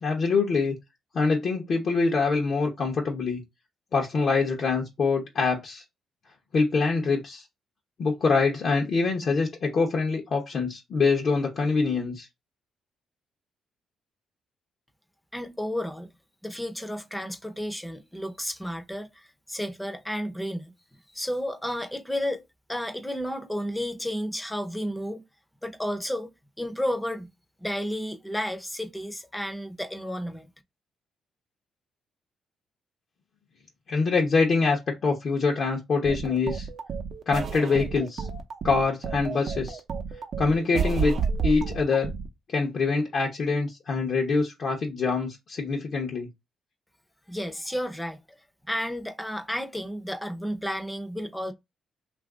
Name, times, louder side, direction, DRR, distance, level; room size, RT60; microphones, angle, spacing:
voice 1, 0.0-0.8 1.1-3.4 3.9-5.8 6.5-7.4 8.0-12.3 33.9-36.7 37.3-38.3 38.6-39.8 40.4-41.1 41.4-42.1 42.5-46.3, left 4 dB, 55° left, 0.8 m, -25 dB
voice 2, 15.3-16.2 16.4-20.7 21.1-22.4 22.7-25.2 25.6-26.3 26.6-27.3 27.6-30.5 47.3-48.4 48.7-51.5, equal, 5° left, 0.6 m, -32 dB
sound 1, 36.0-42.3, right 5 dB, 55° right, 0.6 m, -31 dB
2.8 x 2.5 x 3.5 m
cardioid pair, 90°, 0 cm